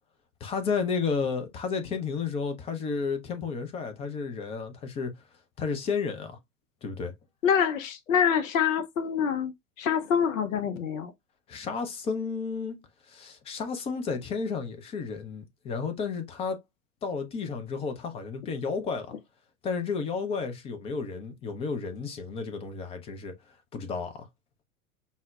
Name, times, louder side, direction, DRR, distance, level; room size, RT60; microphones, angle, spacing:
voice 1, 0.4-5.1 5.6-6.4 6.8-7.1 11.5-12.8 13.1-16.6 17.0-19.2 19.6-23.3 23.7-24.3, left 5 dB, 15° left, 0.4 m, -32 dB
voice 2, 7.4-9.5 9.8-11.1, left 7 dB, 70° left, 0.7 m, -25 dB
5.4 x 2.1 x 2.2 m
figure-of-eight pair, 90°, 42 cm